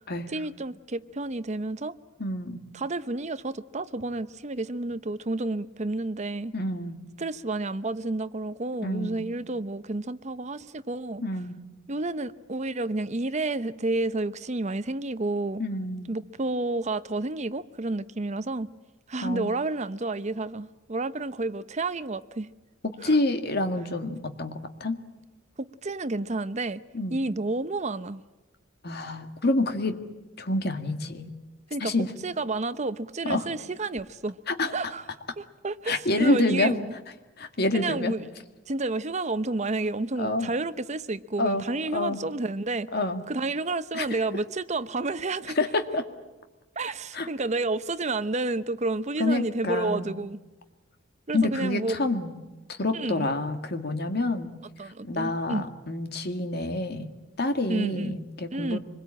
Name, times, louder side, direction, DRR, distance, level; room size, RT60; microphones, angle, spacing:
voice 1, 0.3-1.9 2.7-6.5 7.2-11.2 11.9-15.6 16.1-18.7 19.1-22.5 23.0-23.2 25.6-26.8 27.1-28.2 31.7-34.4 34.7-35.0 35.4-36.9 37.7-38.3 38.7-42.9 43.3-45.6 46.8-50.4 51.3-52.0 52.9-53.3 54.8-55.7 57.7-58.2 58.5-58.8, right 2 dB, 35° right, 0.7 m, -30 dB
voice 2, 2.2-2.6 6.5-7.0 8.8-9.2 11.2-11.6 15.6-16.1 19.2-19.5 22.8-25.0 26.9-27.2 28.8-30.0 30.4-31.3 31.8-32.1 33.3-33.5 34.5-34.7 35.9-36.8 37.4-38.1 40.2-40.5 41.4-41.6 41.9-42.2 42.9-43.2 43.9-44.1 45.6-46.0 47.1-47.3 49.2-50.2 51.3-52.3 52.7-54.5 55.0-57.1 57.4-58.8, left 2 dB, 55° left, 1.9 m, -27 dB
25.5 x 21.5 x 8.8 m
head